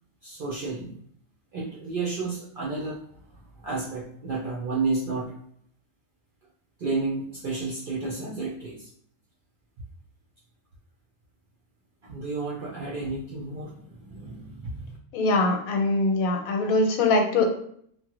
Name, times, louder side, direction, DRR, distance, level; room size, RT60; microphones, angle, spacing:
voice 1, 0.2-1.0 1.5-3.0 3.6-5.3 6.8-8.9 12.0-15.0, right 3 dB, 65° right, -5 dB, 0.5 m, -31 dB
voice 2, 15.1-17.4, left 3 dB, 90° left, 4 dB, 1.0 m, -22 dB
2.9 x 2.1 x 2.9 m, 0.65 s
omnidirectional pair, 1.4 m